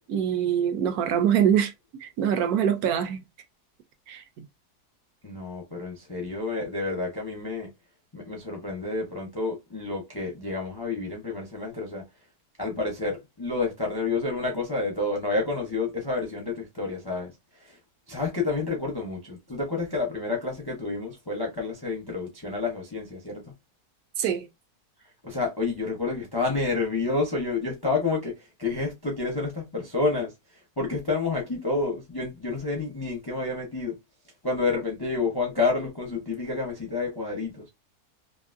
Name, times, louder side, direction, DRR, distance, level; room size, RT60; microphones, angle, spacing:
voice 1, 0.1-1.7 2.0-3.2 4.1-4.2 24.2-24.5, right 9 dB, 75° right, 1.1 m, -24 dB
voice 2, 5.2-7.7 8.1-12.0 12.6-17.3 17.6-17.8 18.1-23.4 25.2-28.3 28.6-30.3 30.8-33.9 34.4-37.7, left 3 dB, 35° left, 0.4 m, -29 dB
2.9 x 2.5 x 2.4 m
omnidirectional pair, 1.7 m